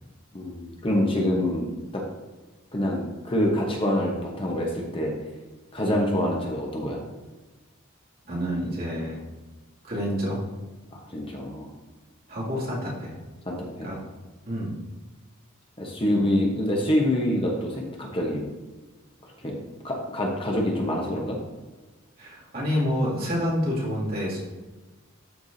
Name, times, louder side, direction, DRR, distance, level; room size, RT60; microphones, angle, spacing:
voice 1, 0.3-1.7 1.9-2.0 2.7-5.1 5.7-7.0 10.9-11.7 13.4-13.9 15.8-18.5 19.4-19.5 19.8-21.4, left 1 dB, 25° left, -1 dB, 1.0 m, -26 dB
voice 2, 8.2-9.2 9.8-10.4 12.3-13.1 13.8-14.0 14.5-14.8 16.1-16.2 22.2-24.4, equal, 45° right, -6 dB, 2.5 m, -28 dB
13.0 x 4.6 x 2.7 m, 1.2 s
head